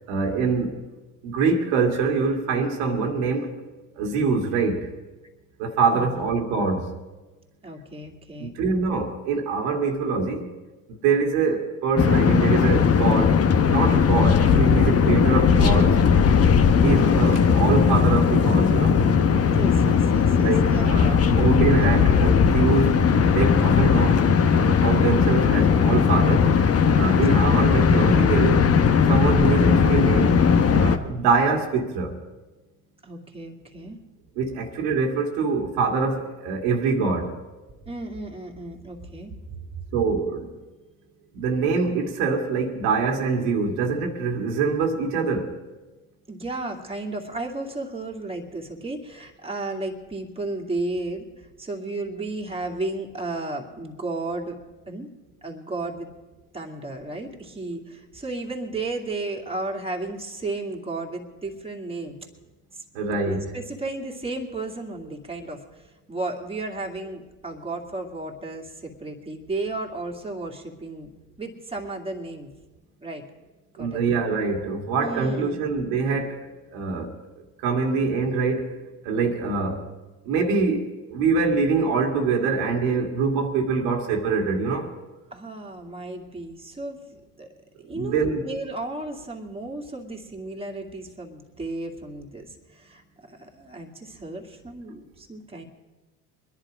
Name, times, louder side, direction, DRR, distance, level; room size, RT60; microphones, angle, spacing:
voice 1, 0.1-0.8 1.2-3.5 4.0-4.9 5.6-7.0 8.4-10.5 10.9-13.4 13.7-16.0 16.8-19.0 20.3-23.0 23.3-26.5 26.9-28.7 29.1-30.4 30.7-32.2 34.4-37.3 39.9-40.5 41.3-45.6 62.9-63.5 73.8-76.4 76.7-77.1 77.6-78.7 79.0-79.9 80.2-84.9 87.9-88.4, right 4 dB, 85° right, 2.1 m, -24 dB
voice 2, 7.6-8.5 17.0-17.5 19.5-21.3 21.8-21.9 33.0-34.0 37.8-39.8 46.3-54.6 54.9-55.1 55.4-56.1 56.5-62.3 62.7-62.8 63.2-65.6 66.1-71.1 71.4-72.5 73.0-73.2 73.8-74.0 75.0-75.6 85.3-87.0 87.4-87.5 87.9-95.6, right 2 dB, 15° right, 2.3 m, -34 dB
sound 1, 12.0-31.0, left 6 dB, 35° left, 1.0 m, -18 dB
22.5 x 10.5 x 5.1 m
supercardioid pair, 85°, 40 cm